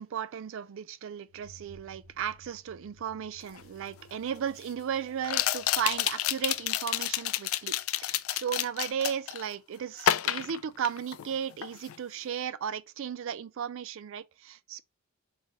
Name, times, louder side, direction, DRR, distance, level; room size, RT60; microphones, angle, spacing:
voice 1, 0.0-14.8, right 8 dB, 65° right, 0.4 m, -35 dB
sound 1, 1.2-7.8, right 1 dB, 40° right, 2.6 m, -58 dB
sound 2, 3.6-3.7 5.2-9.5 10.0-11.3 11.6-12.0, left 12 dB, 75° left, 0.3 m, -29 dB
4.0 x 3.8 x 2.9 m
head